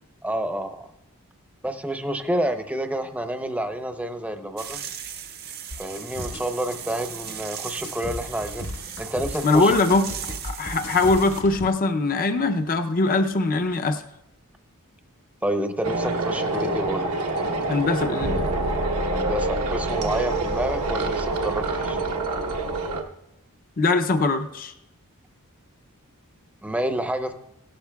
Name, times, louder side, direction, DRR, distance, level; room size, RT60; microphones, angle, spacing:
voice 1, 0.2-0.9 1.6-4.8 5.8-8.7 9.0-9.7 15.4-17.1 19.1-22.0 26.6-27.3, right 1 dB, 5° right, 7 dB, 0.6 m, -29 dB
sound 1, 4.6-11.4, right 9 dB, 45° right, 0.7 m, -37 dB
sound 2, 5.7-11.7, left 1 dB, 65° left, 1.4 m, -37 dB
voice 2, 9.4-10.0 10.4-14.0 17.7-18.5 23.8-24.7, left 3 dB, 40° left, 7 dB, 0.6 m, -21 dB
sound 3, 15.8-23.0, right 2 dB, 85° right, 1.1 m, -26 dB
17.5 x 12.0 x 2.3 m, 0.88 s
head